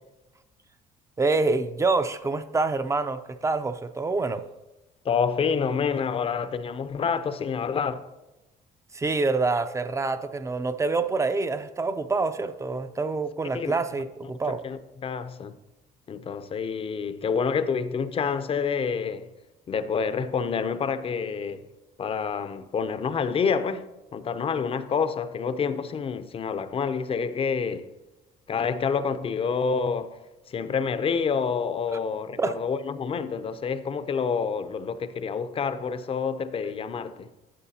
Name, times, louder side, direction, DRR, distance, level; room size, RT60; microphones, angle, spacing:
voice 1, 1.2-4.4 8.9-14.6 32.4-32.5, right 3 dB, 15° right, 0.4 m, -26 dB
voice 2, 5.0-8.0 13.5-13.7 14.5-15.6 16.1-19.3 19.7-21.7 22.0-27.9 28.5-30.2 30.5-37.3, left 6 dB, 35° left, 0.5 m, -28 dB
11.0 x 7.6 x 2.8 m
cardioid pair, 110°, 17 cm